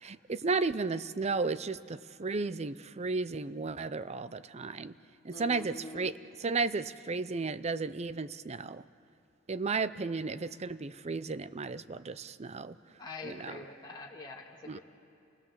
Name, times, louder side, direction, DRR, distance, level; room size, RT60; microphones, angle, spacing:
voice 1, 0.0-4.9 5.2-6.1 6.4-8.8 9.5-12.8 13.2-13.6 14.7-14.8, right 4 dB, 35° right, 14 dB, 0.5 m, -34 dB
voice 2, 5.3-6.0 13.0-14.8, left 2 dB, 20° left, -2 dB, 1.9 m, -44 dB
29.0 x 18.0 x 7.3 m, 2.6 s
head